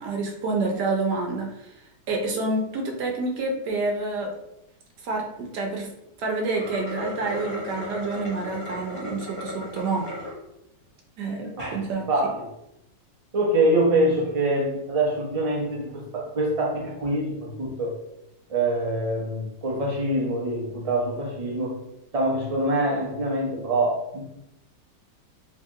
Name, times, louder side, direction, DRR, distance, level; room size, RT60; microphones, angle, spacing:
voice 1, 0.0-1.7 2.1-4.3 5.0-5.9 6.2-10.1 11.2-12.1, right 3 dB, 70° right, 1 dB, 1.2 m, -28 dB
sound 1, 6.5-10.3 10.9-11.0 11.4-11.8, left 1 dB, 35° left, 1.2 m, -35 dB
voice 2, 12.1-12.5 13.3-17.9 18.5-21.8 22.1-24.2, right 1 dB, 55° right, -2 dB, 0.4 m, -25 dB
3.2 x 2.8 x 3.5 m, 0.84 s
omnidirectional pair, 2.0 m